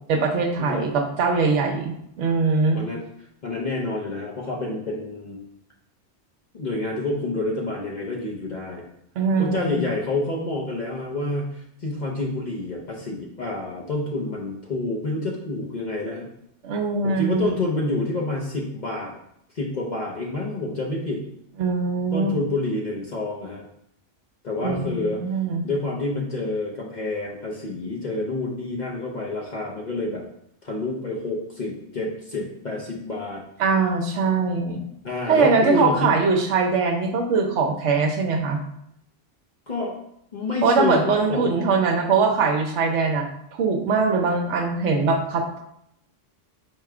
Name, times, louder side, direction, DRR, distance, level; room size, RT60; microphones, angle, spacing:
voice 1, 0.1-2.8 9.2-9.8 16.6-17.5 21.6-22.3 24.6-25.7 33.6-34.8 35.3-38.6 40.6-43.3 43.5-45.6, right 4 dB, 70° right, 3 dB, 1.0 m, -22 dB
voice 2, 3.4-5.4 6.5-8.9 9.4-16.3 17.0-19.1 19.5-21.2 22.1-23.7 24.4-25.2 25.6-30.2 30.6-33.4 35.0-36.1 39.7-39.9 40.3-41.5, left 2 dB, 45° left, -2 dB, 0.7 m, -28 dB
4.7 x 2.2 x 4.7 m, 0.74 s
omnidirectional pair, 1.3 m